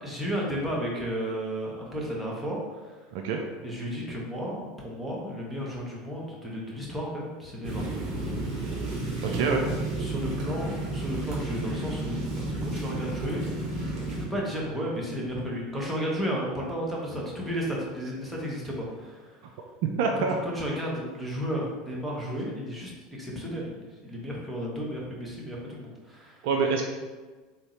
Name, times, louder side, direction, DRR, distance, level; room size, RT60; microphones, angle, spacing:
voice 1, 0.0-3.0 3.6-7.9 8.7-8.8 9.2-9.6 10.0-12.2 12.6-13.4 14.3-19.4 20.2-23.7 24.0-26.5, equal, 5° right, -5 dB, 1.1 m, -33 dB
sound 1, 7.6-14.2, right 2 dB, 40° right, 1.2 m, -32 dB
voice 2, 9.2-9.6 19.8-20.4 26.4-26.8, right 5 dB, 60° right, 2 dB, 0.3 m, -26 dB
3.5 x 2.7 x 3.2 m, 1.3 s
figure-of-eight pair, 75°, 0 cm